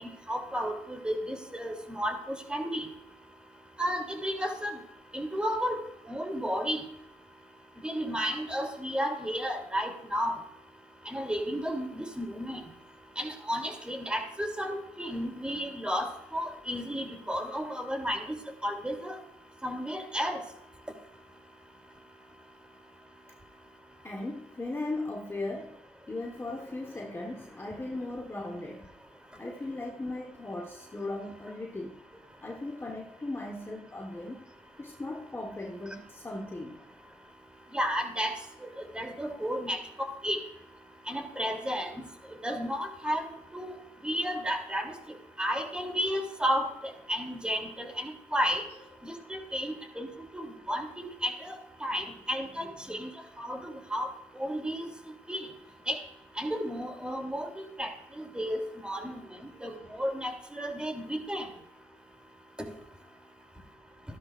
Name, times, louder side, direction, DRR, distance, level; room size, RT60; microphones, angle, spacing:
voice 1, 0.0-2.9 3.8-4.8 5.1-5.8 6.1-6.8 7.8-10.4 11.0-12.7 13.2-18.3 18.6-19.2 19.6-20.4 37.7-38.3 38.9-39.8 40.2-40.4 41.1-41.9 42.4-43.3 43.5-43.7 44.0-44.9 45.4-48.6 49.0-50.1 50.3-53.1 53.4-54.1 54.4-54.9 55.3-55.5 55.9-56.0 56.4-57.9 58.2-61.5 62.6-62.7, equal, 10° right, 2 dB, 3.1 m, -32 dB
voice 2, 24.0-25.8 26.1-28.9 29.4-32.0 32.4-34.5 34.8-36.8 39.3-39.4 52.8-53.1, left 2 dB, 20° left, 1 dB, 1.4 m, -37 dB
14.5 x 12.5 x 2.6 m, 0.79 s
cardioid pair, 80°, 12 cm